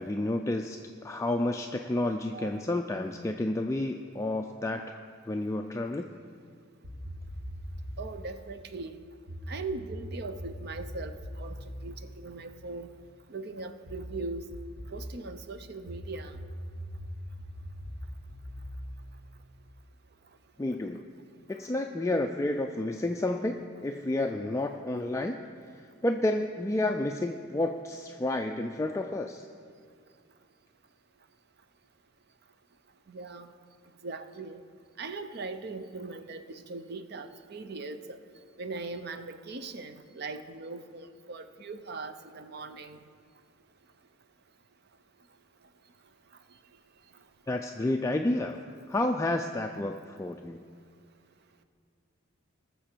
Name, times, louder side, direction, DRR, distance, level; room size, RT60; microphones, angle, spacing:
voice 1, 0.0-5.0 5.3-6.1 20.6-21.1 21.5-25.4 25.7-29.5 47.5-48.6 48.9-50.6, left 1 dB, 15° left, 4 dB, 0.3 m, -30 dB
voice 2, 2.3-2.6 8.0-9.0 9.5-12.9 13.3-14.5 14.9-16.4 33.1-33.5 34.0-34.6 35.0-38.2 38.6-43.0, right 3 dB, 50° right, 9 dB, 0.6 m, -40 dB
sound 1, 6.8-8.1 9.3-13.0 13.9-15.1 15.9-19.8, equal, 80° right, 2.0 m, -41 dB
20.0 x 6.8 x 4.5 m, 2.1 s
head